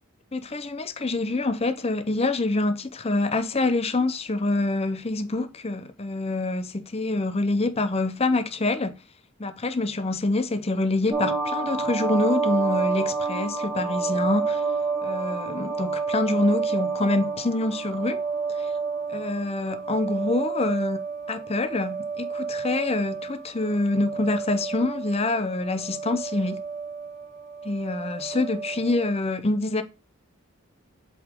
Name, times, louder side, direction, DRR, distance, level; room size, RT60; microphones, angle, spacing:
voice 1, 0.3-9.0 9.4-14.6 15.0-18.2 18.6-18.7 19.1-21.0 21.3-26.6 27.6-29.8, left 2 dB, 30° left, 0.6 m, -26 dB
sound 1, 11.1-29.2, right 4 dB, 15° right, 1.7 m, -30 dB
8.0 x 3.6 x 3.6 m
head